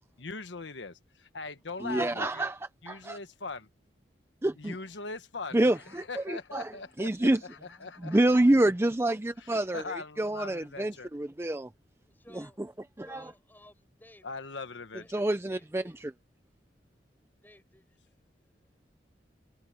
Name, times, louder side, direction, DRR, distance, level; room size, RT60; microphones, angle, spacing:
voice 1, 0.0-2.5 2.8-3.7 4.5-8.4 9.4-11.1 14.2-15.2, left 4 dB, 90° left, 1.3 m, -41 dB
voice 2, 1.8-2.6 2.9-3.2 4.4-4.7 5.5-6.7 7.0-7.4 8.0-9.8 10.2-11.7 13.0-13.2 15.1-15.8, right 1 dB, 15° right, 0.5 m, -27 dB
voice 3, 12.0-12.7 13.0-14.3 14.9-15.9 17.2-19.0, left 1 dB, 10° left, 4.7 m, -58 dB
head